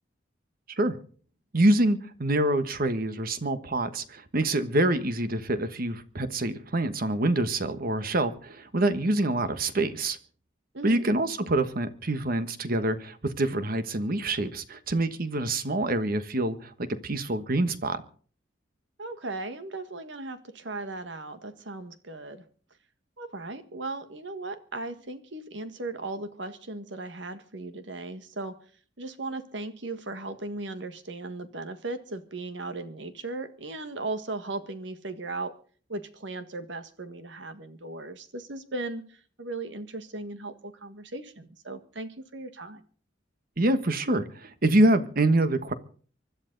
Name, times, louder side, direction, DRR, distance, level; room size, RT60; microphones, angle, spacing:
voice 1, 1.5-10.2 10.8-18.0 43.6-45.7, right 1 dB, 50° right, 11 dB, 1.4 m, -26 dB
voice 2, 10.7-11.1 19.0-22.4 23.2-28.6 29.0-35.5 35.9-42.8, right 2 dB, 70° right, 10 dB, 1.6 m, -37 dB
24.5 x 11.5 x 4.0 m, 0.44 s
head